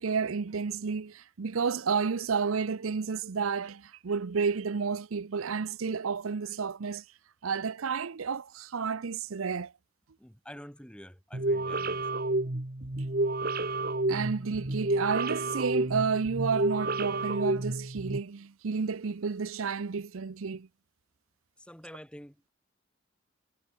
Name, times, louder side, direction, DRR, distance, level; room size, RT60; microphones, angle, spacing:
voice 1, 0.0-7.0 7.4-9.7 14.1-20.7, right 5 dB, 85° right, 0.6 m, -31 dB
voice 2, 10.2-12.1 21.6-22.4, equal, 5° left, 5.3 m, -48 dB
sound 1, 11.3-18.2, right 2 dB, 45° right, 1.5 m, -30 dB
head